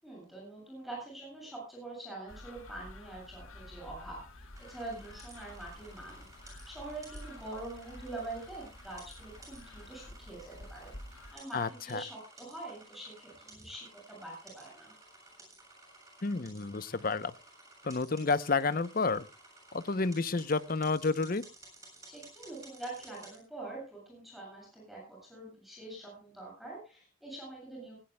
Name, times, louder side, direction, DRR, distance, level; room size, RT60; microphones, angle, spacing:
voice 1, 0.0-4.2 4.7-6.3 6.7-10.9 11.3-14.9 22.0-28.0, right 2 dB, ahead, -2 dB, 7.7 m, -44 dB
sound 1, 2.3-11.4, left 1 dB, 90° left, 2.4 m, -50 dB
sound 2, 4.5-23.4, right 2 dB, 15° right, 7.1 m, -55 dB
voice 2, 11.5-12.0 16.2-17.3 17.8-19.3 19.7-21.4, left 4 dB, 45° left, 14 dB, 0.7 m, -30 dB
19.5 x 18.0 x 2.2 m, 0.31 s
head